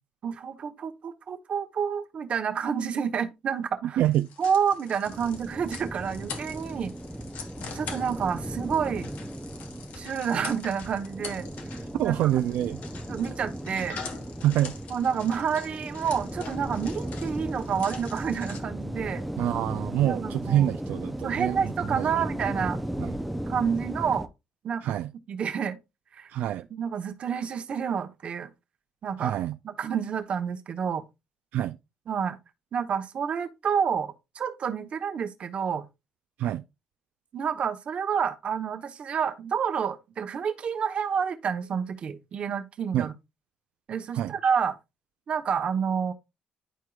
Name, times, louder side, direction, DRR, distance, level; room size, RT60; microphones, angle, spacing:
voice 1, 0.2-4.0 4.4-6.9 7.7-9.1 10.0-11.5 12.0-12.1 13.1-14.0 14.9-19.2 20.0-20.7 21.2-22.8 23.5-24.3 24.6-24.9 25.3-25.8 26.1-26.3 26.7-28.5 29.0-29.3 29.6-31.0 32.1-32.4 32.7-35.9 37.3-43.1 43.9-44.8 45.3-46.1, right 7 dB, 40° right, 0.9 m, -29 dB
voice 2, 3.8-4.3 12.0-12.8 14.4-14.7 19.4-22.1 23.0-23.1 24.8-25.1 26.3-26.7 29.2-29.6 31.5-31.8 36.4-36.6 42.9-43.1 44.1-44.3, right 12 dB, 70° right, 0.3 m, -26 dB
sound 1, 4.1-18.6, left 6 dB, 70° left, 1.2 m, -44 dB
sound 2, 5.1-24.3, right 1 dB, ahead, 0.5 m, -36 dB
11.0 x 4.6 x 2.3 m
cardioid pair, 145°, 3 cm